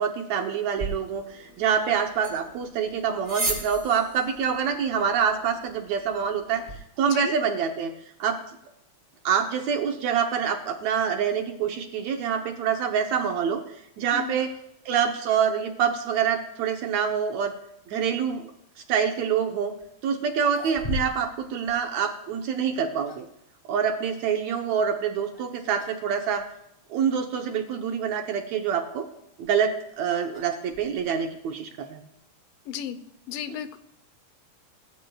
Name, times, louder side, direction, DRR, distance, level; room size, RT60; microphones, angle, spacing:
voice 1, 0.0-6.6 7.0-7.9 8.2-8.4 9.2-14.5 14.9-17.5 17.9-18.5 18.9-19.7 20.0-23.3 23.7-26.5 26.9-29.1 29.4-32.1, right 7 dB, 70° right, 4 dB, 1.9 m, -26 dB
sound 1, 0.8-6.8, right 2 dB, 20° right, 6.6 m, -37 dB
sound 2, 19.8-19.9 20.3-21.4 21.7-21.8 22.7-23.4 25.2-25.4 25.8-26.1 26.4-26.5 27.3-27.4 29.1-31.3, left 2 dB, 10° left, 2.2 m, -38 dB
voice 2, 32.7-33.0 33.3-33.8, left 9 dB, 80° left, 12 dB, 2.4 m, -33 dB
23.0 x 13.5 x 2.3 m, 0.81 s
omnidirectional pair, 3.9 m